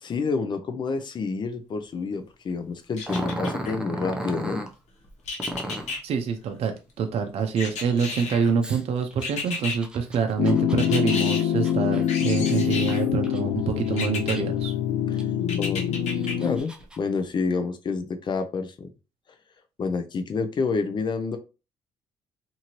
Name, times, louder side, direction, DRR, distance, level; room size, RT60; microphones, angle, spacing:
voice 1, 0.0-4.6 15.1-15.2 15.6-15.8 16.4-18.9 19.8-21.4, left 4 dB, 40° left, 7 dB, 0.5 m, -28 dB
sound 1, 3.0-3.7 5.3-6.0 7.6-8.5 9.2-9.8 10.8-11.4 12.1-13.0 14.0-14.4 15.5-16.3 16.8-16.9, left 4 dB, 70° left, 1.0 m, -32 dB
Growling, 3.0-4.7 5.4-6.0 8.6-13.4 13.9-14.7 15.2-15.3 16.0-17.0, equal, 5° right, 0.6 m, -35 dB
voice 2, 6.0-6.7 7.0-14.7, right 6 dB, 55° right, 5 dB, 0.5 m, -26 dB
sound 2, 10.4-16.6, left 10 dB, 90° left, 0.4 m, -25 dB
2.7 x 2.6 x 3.0 m, 0.30 s
cardioid pair, 105°, 12 cm